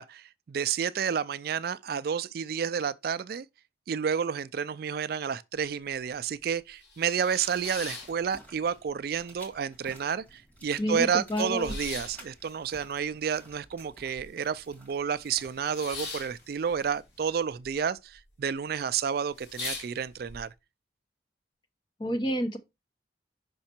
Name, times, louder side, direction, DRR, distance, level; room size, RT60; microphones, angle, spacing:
voice 1, 0.0-3.4 3.9-20.5, right 7 dB, 55° right, 0.3 m, -30 dB
sound 1, 5.6-5.7 6.1-6.2 6.6-8.8 9.1-9.9 10.2-10.3 10.5-14.6 14.9-17.7 18.0-18.5 18.9-19.0 19.3-20.4, left 3 dB, 75° left, 2.2 m, -41 dB
sound 2, 7.6-17.6, right 1 dB, 10° left, 1.8 m, -55 dB
voice 2, 10.8-11.7 22.0-22.6, equal, 25° left, 0.9 m, -29 dB
5.7 x 5.4 x 4.3 m
head